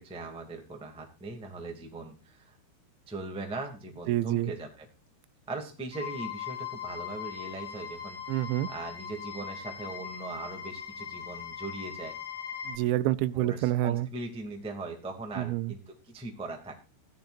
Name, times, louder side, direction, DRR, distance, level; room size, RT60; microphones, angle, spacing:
voice 1, 0.0-2.6 3.1-4.9 5.5-12.1 13.3-16.7, right 2 dB, 5° right, 0.8 m, -40 dB
voice 2, 4.1-4.5 8.3-8.7 12.7-14.1 15.4-15.7, right 15 dB, 85° right, 3.0 m, -27 dB
sound 1, 5.9-12.8, left 8 dB, 20° left, 4.0 m, -40 dB
16.0 x 11.5 x 2.6 m
omnidirectional pair, 5.3 m